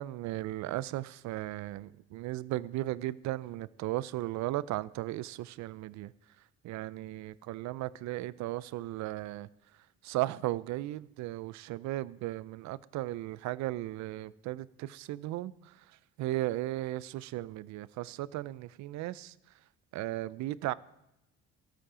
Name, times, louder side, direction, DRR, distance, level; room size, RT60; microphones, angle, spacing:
voice 1, 0.0-6.1 6.6-9.5 10.0-15.8 16.2-19.3 19.9-20.7, right 16 dB, 75° right, 0.5 m, -36 dB
13.0 x 7.7 x 4.9 m
cardioid pair, 160°, 29 cm